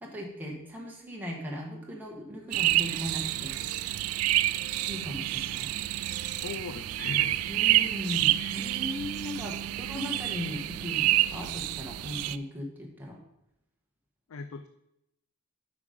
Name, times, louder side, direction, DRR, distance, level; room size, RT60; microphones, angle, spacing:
voice 1, 0.0-3.6 4.9-5.7 7.5-13.2, left 1 dB, 10° right, -2 dB, 1.4 m, -38 dB
sound 1, 2.5-11.6, equal, 10° left, 3.4 m, -53 dB
sound 2, 2.5-12.4, right 15 dB, 85° right, 0.3 m, -28 dB
voice 2, 6.4-7.9 14.3-14.7, left 5 dB, 75° left, 9 dB, 0.4 m, -40 dB
8.4 x 5.1 x 5.2 m, 0.84 s
head